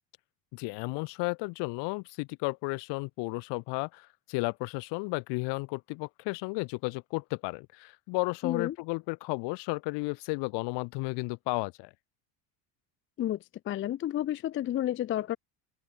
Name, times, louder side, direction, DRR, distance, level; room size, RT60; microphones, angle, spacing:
voice 1, 0.5-11.9, left 27 dB, 75° left, 1.5 m, -33 dB
voice 2, 8.4-8.8 13.2-15.4, left 12 dB, 30° left, 0.5 m, -31 dB
open air
cardioid pair, 150°, 42 cm